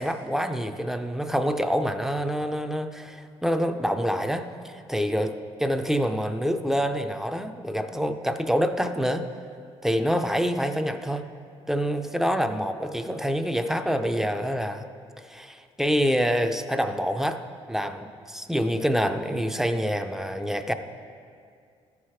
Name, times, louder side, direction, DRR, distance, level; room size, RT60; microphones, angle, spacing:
voice 1, 0.0-9.2 9.8-11.3 11.7-14.8 15.2-17.4 17.7-20.7, equal, 5° right, 8 dB, 0.4 m, -26 dB
13.5 x 4.8 x 4.4 m, 2.3 s
cardioid pair, 115°, 11 cm